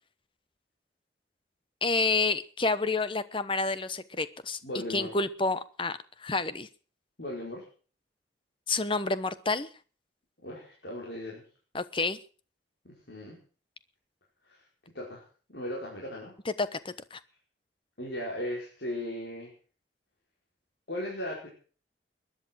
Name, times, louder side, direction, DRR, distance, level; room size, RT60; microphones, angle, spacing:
voice 1, 1.8-4.6 4.9-6.7 8.7-9.7 11.7-12.2 16.6-17.2, left 3 dB, 30° left, 14 dB, 1.0 m, -29 dB
voice 2, 4.6-5.1 7.2-7.6 10.4-11.4 12.9-13.4 14.5-14.6 14.9-15.2 15.5-16.3 18.0-19.5 20.9-21.5, left 1 dB, 75° left, -3 dB, 5.2 m, -37 dB
21.0 x 11.0 x 6.3 m, 0.41 s
head